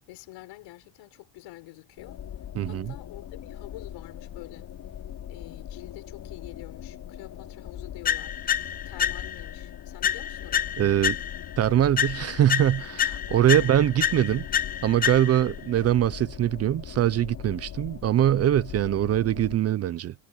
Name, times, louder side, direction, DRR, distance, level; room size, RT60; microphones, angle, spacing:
voice 1, 0.1-2.2 2.6-4.7 5.3-8.4 8.8-10.7 13.5-13.8, left 19 dB, 75° left, 6.7 m, -46 dB
sound 1, 2.0-19.6, left 10 dB, 40° left, 5.0 m, -40 dB
voice 2, 2.5-2.9 10.8-11.2 11.6-14.4 14.8-20.1, right 11 dB, 35° right, 0.5 m, -23 dB
sound 2, 8.0-9.5 10.0-11.6 12.0-15.6, left 9 dB, 20° left, 0.4 m, -28 dB
cardioid pair, 165°, 45 cm